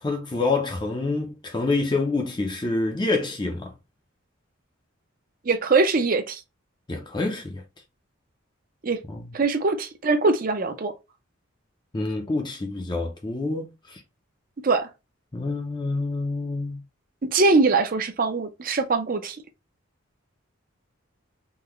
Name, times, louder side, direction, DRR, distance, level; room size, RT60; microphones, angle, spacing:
voice 1, 0.0-3.7 6.9-7.6 9.1-9.3 11.9-14.0 15.3-16.8, left 3 dB, 20° left, 0.5 m, -27 dB
voice 2, 5.4-6.4 8.8-9.0 9.3-10.9 14.6-14.9 17.2-19.4, right 3 dB, 40° right, 0.5 m, -22 dB
3.8 x 2.1 x 3.0 m
head